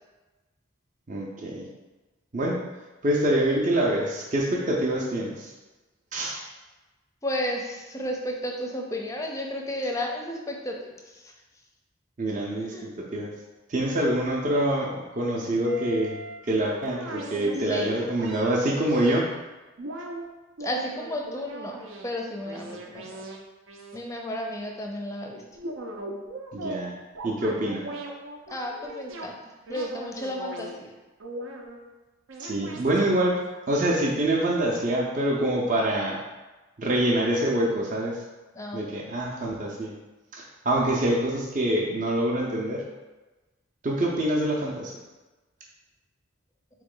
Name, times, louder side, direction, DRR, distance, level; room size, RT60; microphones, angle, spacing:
voice 1, 1.1-1.7 2.3-2.6 3.0-5.5 6.1-6.4 12.2-12.7 13.1-13.3 13.7-16.2 16.5-19.3 26.5-26.9 27.2-27.8 32.4-33.4 33.7-36.2 36.8-38.2 38.7-39.9 40.3-42.8 43.8-44.9, right 1 dB, 40° right, -3 dB, 0.5 m, -25 dB
voice 2, 7.2-10.8 11.0-11.2 12.6-12.9 17.6-17.9 20.6-23.1 23.9-25.4 28.5-29.4 29.7-30.9 38.5-38.9, left 1 dB, 15° left, 1 dB, 0.5 m, -33 dB
sound 1, 15.6-19.2 19.8-20.3 20.6-22.1 22.4-23.4 23.7-24.0 25.6-26.8 27.2-29.3 29.7-30.7 31.2-31.8 32.3-33.6 33.9-34.0, right 1 dB, 85° right, 0.6 m, -39 dB
4.0 x 3.0 x 3.7 m, 1.2 s
head